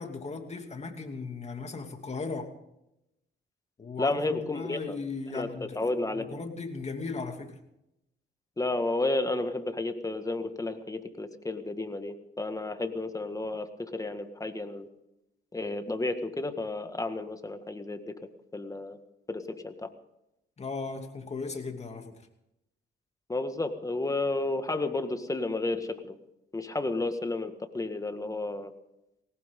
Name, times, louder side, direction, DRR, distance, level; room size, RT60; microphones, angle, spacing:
voice 1, 0.0-2.5 3.8-7.6 20.6-22.2, left 4 dB, 35° left, 5 dB, 2.6 m, -37 dB
voice 2, 4.0-5.0 5.3-6.3 8.6-14.9 15.5-18.1 18.5-19.0 19.3-19.9 23.3-26.2 26.5-28.7, left 2 dB, 15° left, 8 dB, 1.7 m, -32 dB
20.0 x 18.0 x 3.8 m, 0.86 s
cardioid pair, 90°, 20 cm